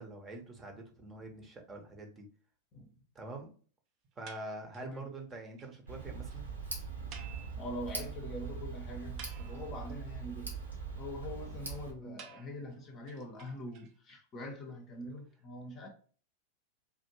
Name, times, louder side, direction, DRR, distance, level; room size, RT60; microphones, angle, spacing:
voice 1, 0.0-2.3 3.1-3.5 4.2-6.5, right 2 dB, 20° right, 0.9 m, -45 dB
sound 1, 4.3-5.0 5.3-5.4 5.6-5.7 6.0-6.1 6.3-6.4 7.1-8.1 8.4-8.5 8.9-9.9 12.2-14.1, right 7 dB, 40° right, 0.6 m, -53 dB
voice 2, 4.8-5.1 7.5-10.5 11.0-15.9, left 1 dB, 30° left, 0.8 m, -43 dB
Tick, 5.9-11.9, right 5 dB, 80° right, 1.0 m, -41 dB
3.5 x 2.5 x 2.9 m
figure-of-eight pair, 90°, 0 cm